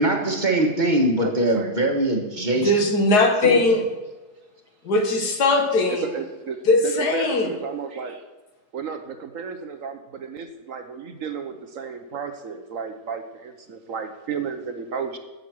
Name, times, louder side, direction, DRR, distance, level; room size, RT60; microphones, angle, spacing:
voice 1, 0.0-2.7 3.4-3.8, right 1 dB, 30° right, 2 dB, 1.4 m, -22 dB
voice 2, 1.2-1.8 5.9-8.2 8.7-15.2, right 6 dB, 60° right, 7 dB, 1.1 m, -33 dB
voice 3, 2.6-3.9 4.8-6.0 6.7-7.5, left 2 dB, 75° left, 4 dB, 2.1 m, -19 dB
16.0 x 6.6 x 6.2 m, 1.2 s
omnidirectional pair, 1.7 m